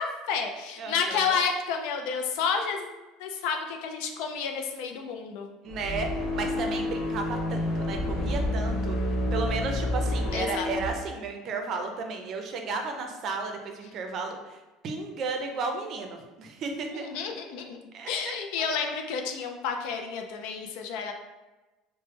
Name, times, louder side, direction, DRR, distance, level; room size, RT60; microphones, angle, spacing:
voice 1, 0.0-2.9 3.2-5.5 10.3-10.7 16.9-17.8 18.1-21.1, left 6 dB, 75° left, 4 dB, 0.3 m, -30 dB
voice 2, 0.8-1.4 5.6-9.0 9.3-14.6 14.8-17.1 17.9-18.7, right 4 dB, 45° right, 4 dB, 0.5 m, -34 dB
sound 1, 5.7-10.9, left 1 dB, 60° left, 0.7 m, -29 dB
3.1 x 2.0 x 3.2 m, 1.1 s
supercardioid pair, 125°, 0 cm